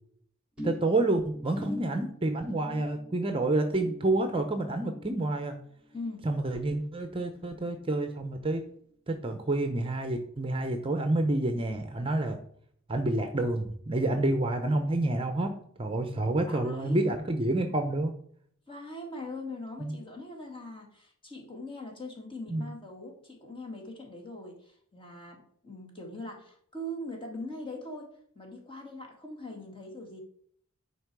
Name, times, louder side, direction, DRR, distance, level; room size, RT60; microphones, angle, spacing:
sound 1, 0.6-7.2 7.4-7.9 8.2-8.3, left 1 dB, 5° right, 2.8 m, -45 dB
voice 1, 0.6-5.6 6.2-8.6 9.1-12.4 12.9-15.5 15.8-18.1 19.8-19.9 22.5-22.6, right 2 dB, 25° right, 7 dB, 0.7 m, -28 dB
voice 2, 5.9-6.3 16.1-17.0 18.7-30.2, left 1 dB, 25° left, 0 dB, 2.1 m, -41 dB
10.5 x 4.6 x 4.7 m, 0.63 s
head